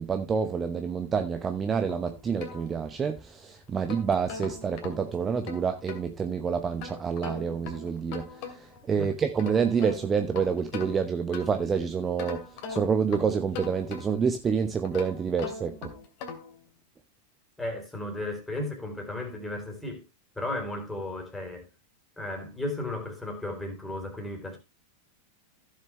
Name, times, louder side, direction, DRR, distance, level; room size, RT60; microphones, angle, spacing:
voice 1, 0.0-12.4 12.7-15.9, right 6 dB, 20° right, 0.9 m, -28 dB
sound 1, 1.9-3.2 3.7-6.1 6.8-8.8 9.2-11.7 12.2-14.3 14.8-16.6, left 5 dB, 45° left, 2.5 m, -41 dB
voice 2, 17.6-20.0 20.4-21.7 22.2-24.6, left 1 dB, 5° left, 3.6 m, -34 dB
15.5 x 6.6 x 3.2 m
figure-of-eight pair, 90°, 0 cm